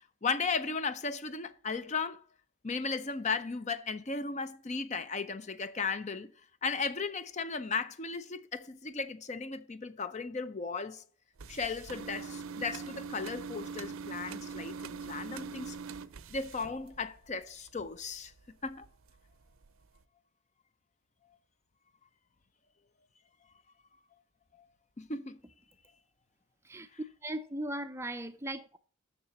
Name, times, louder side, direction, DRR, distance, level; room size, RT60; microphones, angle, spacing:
voice 1, 0.2-2.2 2.6-6.3 6.6-11.0 11.5-15.7 16.3-18.3 18.6-18.9 25.0-25.4, left 4 dB, 35° left, 0.6 m, -36 dB
sound 1, 11.4-17.3 17.7-18.5 18.8-19.1 19.6-19.7 20.0-20.1, right 5 dB, 85° right, 0.6 m, -42 dB
voice 2, 27.2-28.8, right 1 dB, 15° right, 0.4 m, -38 dB
6.9 x 6.6 x 6.9 m
head